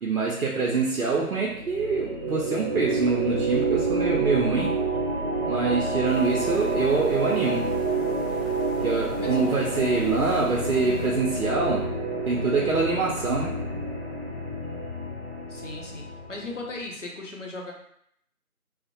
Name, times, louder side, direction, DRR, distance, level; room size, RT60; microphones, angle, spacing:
voice 1, 0.0-4.8 5.5-7.7 8.8-12.0 12.3-13.5, right 4 dB, 75° right, -3 dB, 0.6 m, -25 dB
sound 1, 1.4-16.7, right 3 dB, 45° right, 0.7 m, -29 dB
sound 2, 6.0-11.1, left 1 dB, ahead, 0.4 m, -45 dB
voice 2, 15.5-17.7, left 2 dB, 55° left, -1 dB, 0.6 m, -37 dB
2.5 x 2.1 x 2.6 m, 0.71 s
figure-of-eight pair, 170°, 44 cm